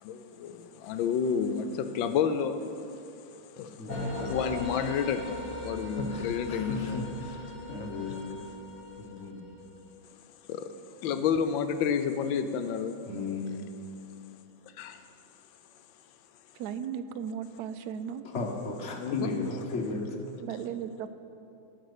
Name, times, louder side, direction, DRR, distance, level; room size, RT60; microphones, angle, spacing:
voice 1, 0.0-2.8 3.5-7.1 10.5-10.7 11.0-13.0 14.8-15.0 19.0-19.3, left 7 dB, 80° left, 1.4 m, -30 dB
voice 2, 3.8-4.1 6.0-8.4 8.9-9.4 13.1-13.8 18.2-20.4, left 3 dB, 40° left, 1.3 m, -35 dB
sound 1, 3.9-9.9, left 1 dB, 25° left, 1.9 m, -39 dB
voice 3, 16.5-18.2 20.4-21.1, right 8 dB, 75° right, 0.9 m, -36 dB
12.0 x 5.9 x 8.1 m
omnidirectional pair, 2.1 m